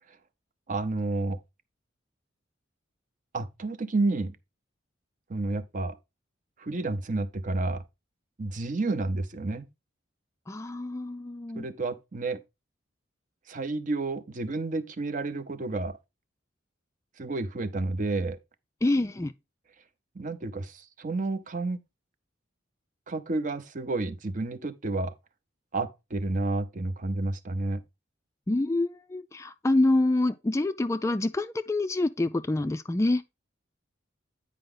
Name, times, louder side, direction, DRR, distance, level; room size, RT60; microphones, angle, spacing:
voice 1, 0.7-1.4 3.3-4.4 5.3-6.0 6.6-7.8 8.4-9.7 11.5-12.4 13.5-16.0 17.2-18.4 20.2-21.8 23.1-25.1 25.7-27.8, right 2 dB, 45° right, 0.6 m, -30 dB
voice 2, 10.5-11.7 18.8-19.3 28.5-33.2, left 2 dB, 15° left, 0.3 m, -26 dB
9.2 x 4.9 x 3.7 m
head